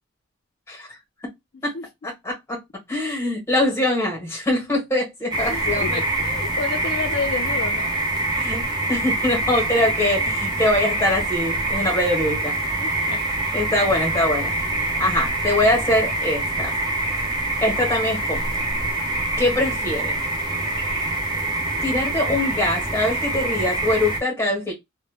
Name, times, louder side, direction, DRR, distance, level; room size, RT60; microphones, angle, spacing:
voice 1, 0.7-1.0 1.6-1.7 2.0-2.6 2.9-5.9 8.4-8.6 8.9-12.6 13.5-14.5 15.0-16.7 17.6-18.4 19.4-20.1 21.8-24.7, left 1 dB, 10° left, 1.0 m, -23 dB
sound 1, 5.3-24.2, right 2 dB, 20° right, 0.6 m, -25 dB
voice 2, 5.5-7.9 12.8-13.2 14.7-14.9, left 4 dB, 50° left, 0.3 m, -30 dB
2.1 x 2.0 x 3.2 m
head